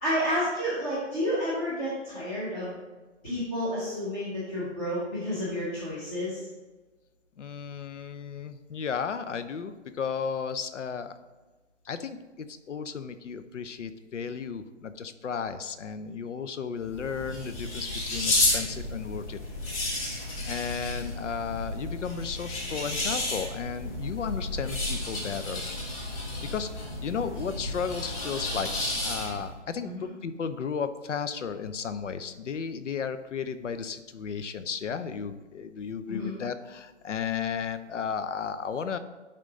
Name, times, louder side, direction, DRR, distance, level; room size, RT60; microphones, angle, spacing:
voice 1, 0.0-2.7 3.2-6.4 29.8-30.0 36.1-36.3, equal, 5° left, -9 dB, 0.6 m, -30 dB
voice 2, 7.4-11.1 11.8-19.4 20.4-25.8 26.5-28.7 29.0-39.0, left 6 dB, 75° left, 11 dB, 0.7 m, -34 dB
sound 1, 16.8-29.5, left 2 dB, 30° left, 1.6 m, -32 dB
10.5 x 3.8 x 3.8 m, 1.2 s
hypercardioid pair, 150°, 37 cm